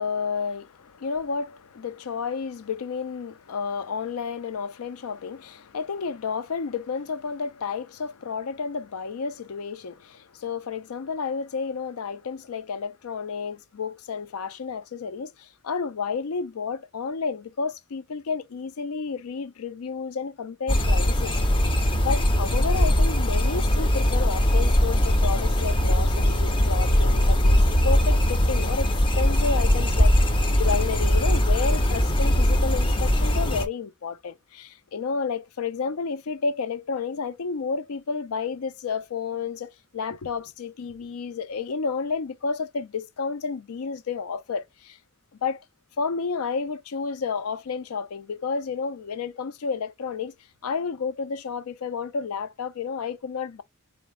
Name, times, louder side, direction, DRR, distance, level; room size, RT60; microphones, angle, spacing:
voice 1, 0.0-21.7 22.0-28.9 29.2-45.0 45.4-45.6 46.0-50.3 50.6-53.6, left 5 dB, 75° left, 0.5 m, -31 dB
sound 1, 20.7-33.7, equal, 25° left, 0.5 m, -21 dB
4.1 x 2.6 x 3.1 m
head